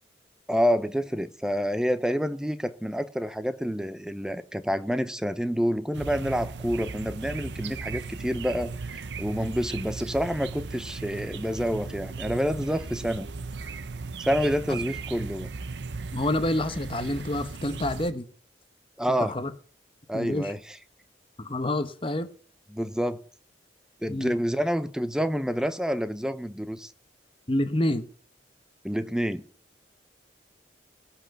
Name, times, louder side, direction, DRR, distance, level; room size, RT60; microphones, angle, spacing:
voice 1, 0.5-13.3 14.2-15.5 19.0-19.3 20.1-20.6 22.7-23.2 24.0-26.9 28.8-29.4, equal, 5° right, 0.7 m, -28 dB
sound 1, 5.9-18.1, right 4 dB, 80° right, 0.7 m, -37 dB
voice 2, 16.1-18.3 19.1-19.5 20.1-20.5 21.4-22.3 24.1-24.3 27.5-28.1, left 1 dB, 30° left, 1.0 m, -28 dB
17.0 x 5.8 x 6.9 m
head